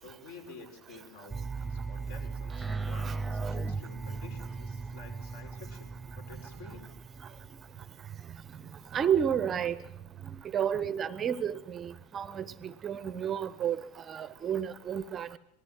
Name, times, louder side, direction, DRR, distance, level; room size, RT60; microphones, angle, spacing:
voice 1, 0.0-6.9, left 4 dB, 55° left, 5.6 m, -51 dB
sound 1, 1.3-8.0, right 4 dB, 10° right, 1.2 m, -37 dB
voice 2, 8.9-9.8 10.5-13.8 14.1-15.4, right 8 dB, 25° right, 0.9 m, -31 dB
26.5 x 20.0 x 7.8 m
figure-of-eight pair, 90°, 0 cm